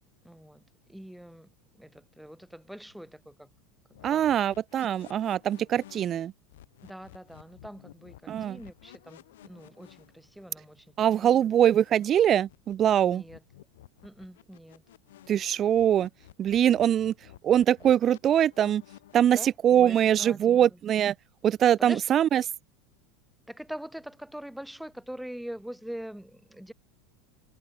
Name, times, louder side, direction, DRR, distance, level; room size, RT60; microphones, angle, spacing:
voice 1, 0.2-0.6 0.9-1.5 1.7-3.5 3.9-4.4 6.8-11.5 13.1-13.4 14.0-14.8 19.3-20.8 21.8-22.0 23.5-26.7, equal, ahead, 6.3 m, -43 dB
sound 1, 3.9-12.2 12.5-15.4 15.7-19.2, left 14 dB, 80° left, 7.8 m, -53 dB
voice 2, 4.0-6.3 8.3-8.6 11.0-13.2 15.3-16.1 16.4-17.1 17.4-18.8 19.1-21.1 21.4-22.4, right 10 dB, 35° right, 0.5 m, -23 dB
hypercardioid pair, 100°, 0 cm